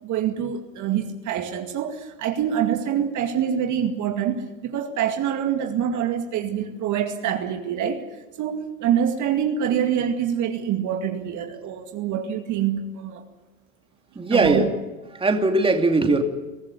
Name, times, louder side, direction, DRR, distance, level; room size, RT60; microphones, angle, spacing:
voice 1, 0.0-4.4 4.7-8.0 8.4-13.2 14.3-14.7, right 9 dB, 50° right, 5 dB, 2.3 m, -25 dB
voice 2, 14.1-14.7 15.1-16.2, right 2 dB, 15° right, 3 dB, 2.8 m, -20 dB
23.0 x 14.5 x 9.8 m, 1.1 s
supercardioid pair, 105°, 39 cm